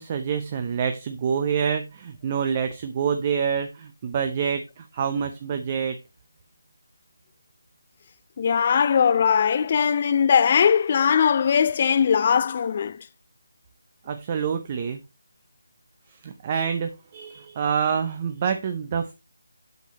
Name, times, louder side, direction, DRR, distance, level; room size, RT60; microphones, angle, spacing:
voice 1, 0.0-6.0 14.1-15.0 16.1-19.1, right 7 dB, 25° right, 0.7 m, -27 dB
voice 2, 8.4-13.0, left 7 dB, 35° left, 0.5 m, -20 dB
8.1 x 6.4 x 4.0 m
figure-of-eight pair, 160°, 0 cm